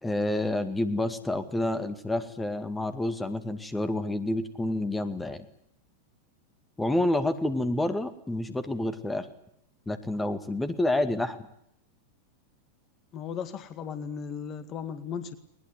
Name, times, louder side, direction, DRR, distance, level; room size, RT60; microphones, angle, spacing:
voice 1, 0.0-5.5 6.8-9.3 9.9-11.4, left 1 dB, 10° left, 10 dB, 2.2 m, -28 dB
voice 2, 13.1-15.3, left 7 dB, 30° left, 12 dB, 2.1 m, -36 dB
21.5 x 21.0 x 9.6 m, 0.72 s
figure-of-eight pair, 90°, 0 cm